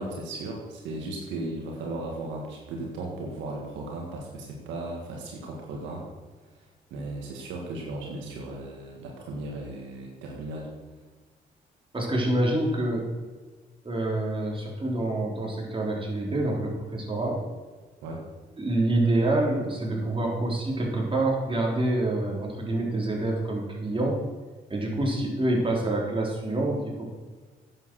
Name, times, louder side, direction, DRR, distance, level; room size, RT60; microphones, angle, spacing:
voice 1, 0.0-6.1 6.9-10.7 18.0-18.3, right 2 dB, 85° right, 0 dB, 1.8 m, -36 dB
voice 2, 11.9-13.0 13.8-17.4 18.6-24.2 24.7-27.1, right 2 dB, 30° right, -1 dB, 3.9 m, -27 dB
9.7 x 7.7 x 6.3 m, 1.4 s
supercardioid pair, 60°, 19 cm